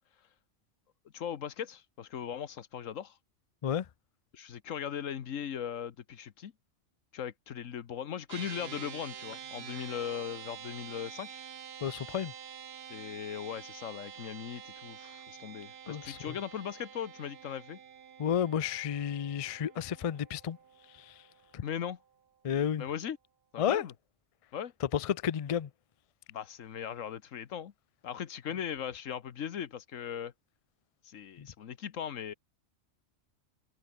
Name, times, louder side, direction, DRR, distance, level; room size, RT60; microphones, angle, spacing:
voice 1, 1.1-3.2 4.3-6.5 7.1-11.4 12.9-17.8 21.6-22.0 22.8-23.2 23.5-23.9 24.5-24.7 26.3-27.7 28.0-30.3 31.0-32.3, left 8 dB, 85° left, 1.4 m, -39 dB
sound 1, 8.3-21.8, right 8 dB, 55° right, 1.1 m, -48 dB
voice 2, 11.8-12.3 15.9-16.4 18.2-20.6 20.9-21.3 21.5-21.6 22.4-22.9 23.6-23.9 24.8-25.7 31.4-31.5, left 9 dB, 60° left, 0.3 m, -32 dB
omnidirectional pair, 1.3 m